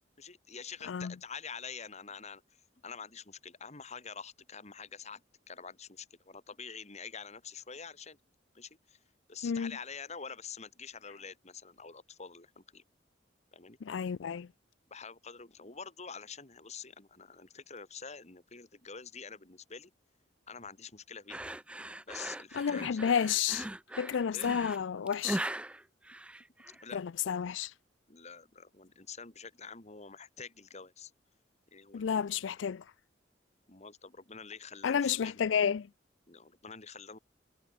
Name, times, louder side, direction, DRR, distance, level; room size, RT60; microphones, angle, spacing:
voice 1, 0.2-2.4 2.8-8.2 8.5-9.0 9.3-12.8 13.5-13.8 14.9-19.9 20.5-21.4 22.1-23.1 24.3-24.5 26.7-27.0 28.1-31.1 31.7-32.2 33.7-35.4 36.3-37.2, left 6 dB, 35° left, 2.3 m, -47 dB
voice 2, 13.8-14.5 22.5-23.7 24.0-25.4 26.9-27.7 31.9-32.8 34.8-35.9, left 7 dB, 80° left, 0.4 m, -31 dB
sound 1, 21.3-26.8, right 1 dB, 5° right, 0.4 m, -40 dB
head